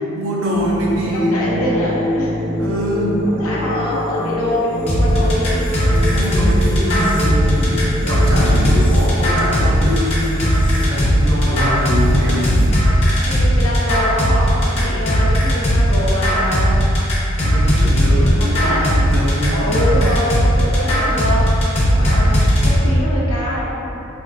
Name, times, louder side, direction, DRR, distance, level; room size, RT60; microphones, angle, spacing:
voice 1, 0.1-1.6 2.6-3.4 6.0-10.3 10.8-12.5 17.4-19.8, equal, 65° right, -4 dB, 0.6 m, -23 dB
sound 1, 0.5-12.8, left 1 dB, 5° left, 0.3 m, -26 dB
voice 2, 1.1-2.4 3.2-5.6 13.2-16.8 18.0-18.9 19.6-21.5 21.8-23.7, equal, 70° left, -6 dB, 0.8 m, -24 dB
sound 2, 4.9-22.7, equal, 25° left, 0.7 m, -16 dB
3.5 x 3.1 x 2.6 m, 3.0 s
head